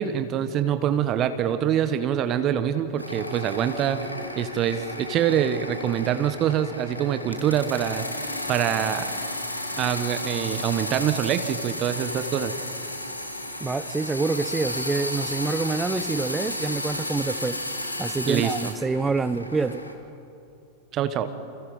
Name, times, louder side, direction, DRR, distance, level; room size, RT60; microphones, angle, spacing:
voice 1, 0.0-4.1 4.4-8.1 8.5-9.1 9.8-12.5 18.3-18.7 20.9-21.3, right 10 dB, 35° right, 1.4 m, -25 dB
sound 1, 3.0-19.9, left 1 dB, 85° left, 2.4 m, -33 dB
voice 2, 13.6-19.8, right 4 dB, 10° right, 1.0 m, -27 dB
29.5 x 29.0 x 5.5 m
figure-of-eight pair, 90°, 0 cm